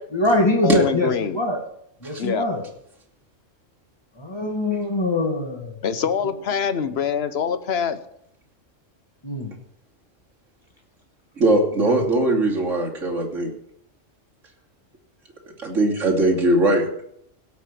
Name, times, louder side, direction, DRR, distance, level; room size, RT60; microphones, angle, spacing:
voice 1, 0.1-1.6 2.0-2.6 4.2-5.8 6.8-6.9 9.2-9.5 11.9-12.0, left 1 dB, 20° left, 2 dB, 2.4 m, -23 dB
voice 2, 0.6-1.4 2.2-2.5 5.8-8.0, left 7 dB, 60° left, 12 dB, 1.1 m, -24 dB
voice 3, 11.4-13.5 15.6-16.9, right 1 dB, 75° right, -2 dB, 3.3 m, -20 dB
17.0 x 6.1 x 8.5 m, 0.72 s
omnidirectional pair, 1.3 m